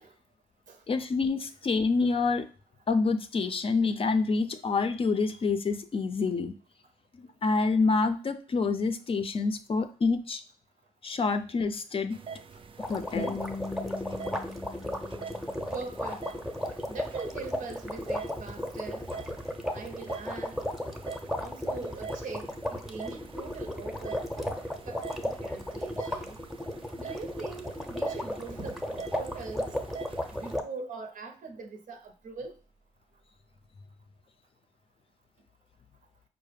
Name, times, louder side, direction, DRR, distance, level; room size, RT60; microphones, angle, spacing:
voice 1, 0.9-2.5 2.9-6.5 7.1-10.4 11.0-12.2 12.8-13.4, left 4 dB, 40° left, 0.4 m, -27 dB
sound 1, 12.1-30.6, right 6 dB, 40° right, 0.4 m, -46 dB
sound 2, 12.8-30.6, left 1 dB, ahead, 0.7 m, -35 dB
Guitar, 13.2-16.2, left 4 dB, 85° left, 0.6 m, -40 dB
voice 2, 15.7-16.2 16.9-19.1 19.7-20.6 21.4-24.5 24.9-26.4 27.0-28.8 29.1-29.7 30.3-32.5, right 4 dB, 70° right, 0.7 m, -42 dB
4.6 x 2.0 x 3.3 m
supercardioid pair, 55°, 14 cm